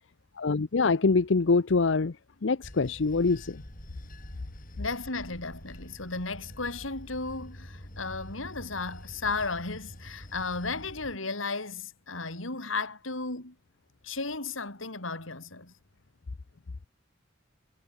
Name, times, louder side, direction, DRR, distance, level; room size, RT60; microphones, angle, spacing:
voice 1, 0.4-2.2 2.4-3.6, left 4 dB, 70° left, 0.7 m, -24 dB
Bell / Train, 2.6-11.2, equal, 45° left, 5.5 m, -46 dB
voice 2, 4.8-13.5 14.0-15.7, left 3 dB, 90° left, 4.6 m, -34 dB
head